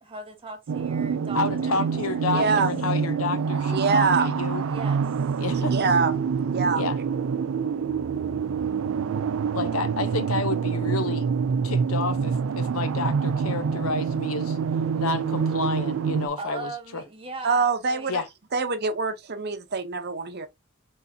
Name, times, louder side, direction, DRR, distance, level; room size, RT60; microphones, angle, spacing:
voice 1, 0.0-2.0 2.3-2.6 4.7-5.1 16.4-18.1, right 3 dB, 25° right, 1.3 m, -38 dB
sound 1, 0.7-16.3, right 6 dB, 65° right, 0.4 m, -26 dB
voice 2, 1.3-4.6 5.4-5.7 6.8-7.0 9.5-11.3 11.6-14.6 15.0-17.0 18.1-18.2, left 4 dB, 75° left, 0.8 m, -30 dB
voice 3, 2.3-2.7 3.4-4.3 5.5-6.1 6.5-6.8 17.4-18.2 18.5-20.5, right 4 dB, 50° right, 0.8 m, -25 dB
4.0 x 3.9 x 2.7 m
head